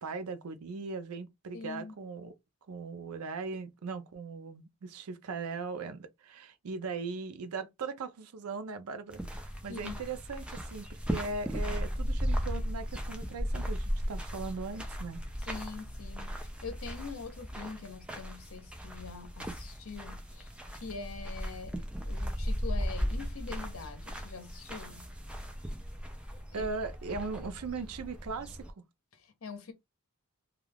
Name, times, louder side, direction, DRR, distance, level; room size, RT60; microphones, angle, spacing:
voice 1, 0.0-2.3 2.7-15.2 26.5-28.8, right 4 dB, 85° right, 0.5 m, -39 dB
voice 2, 1.5-2.0 9.7-9.9 15.4-20.5 20.8-25.1 26.6-26.7 29.1-29.7, left 4 dB, 70° left, 0.7 m, -44 dB
sound 1, 9.1-28.7, equal, 5° right, 0.3 m, -37 dB
2.3 x 2.3 x 3.3 m
head